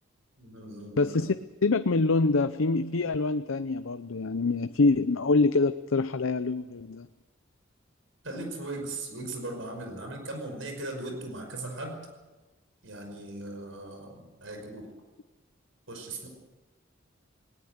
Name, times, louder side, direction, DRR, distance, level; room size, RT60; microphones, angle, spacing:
voice 1, 0.4-1.1 8.2-12.0 12.8-14.9 15.9-16.3, right 2 dB, 75° right, 4 dB, 5.5 m, -38 dB
voice 2, 1.0-1.3 1.6-7.1, left 3 dB, 85° left, 11 dB, 0.7 m, -25 dB
19.5 x 19.0 x 8.2 m, 1.2 s
head